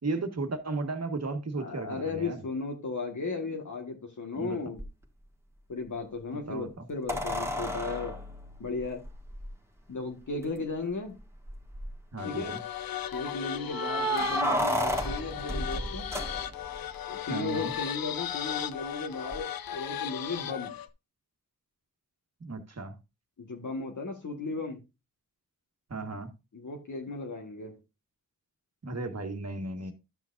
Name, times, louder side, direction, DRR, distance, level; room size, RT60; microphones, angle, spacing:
voice 1, 0.0-2.4 4.4-4.6 6.3-6.9 12.1-12.6 17.3-17.7 22.4-23.0 25.9-26.3 28.8-29.9, right 3 dB, 45° right, 1.5 m, -35 dB
voice 2, 1.5-4.8 5.7-8.1 8.6-9.0 9.9-11.1 12.2-12.5 13.1-16.1 17.1-20.7 23.4-24.8 26.5-27.7, left 3 dB, 55° left, 1.5 m, -35 dB
sound 1, 4.8-4.9 7.1-9.5 10.4-10.5 10.8-10.9 11.5-12.0 13.7-16.8 19.3-19.4, equal, 5° right, 1.7 m, -32 dB
sound 2, 12.2-20.9, left 10 dB, 75° left, 0.6 m, -37 dB
12.0 x 6.0 x 2.5 m
cardioid pair, 50°, 35 cm